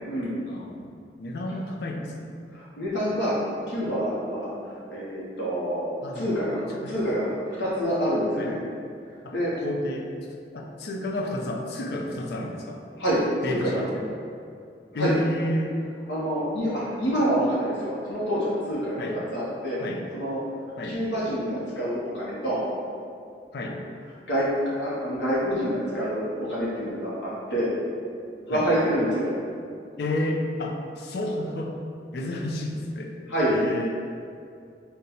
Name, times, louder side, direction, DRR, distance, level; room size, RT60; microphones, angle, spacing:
voice 1, 0.5-2.3 6.0-6.3 6.8-6.9 8.4-8.5 9.2-10.1 10.5-12.8 13.4-14.1 14.9-15.8 19.0-19.2 19.8-20.0 20.8-21.0 23.5-23.8 28.5-28.7 30.0-31.8 32.1-33.1 33.5-33.9, left 1 dB, 65° left, 0 dB, 0.5 m, -31 dB
voice 2, 2.5-3.4 3.7-4.5 4.9-8.5 9.3-9.5 13.0-13.8 15.0-15.1 16.1-19.8 20.1-20.4 20.8-22.6 24.3-27.7 28.5-29.3 33.3-33.5, equal, 90° left, -8 dB, 0.8 m, -27 dB
3.9 x 2.2 x 4.2 m, 2.4 s
head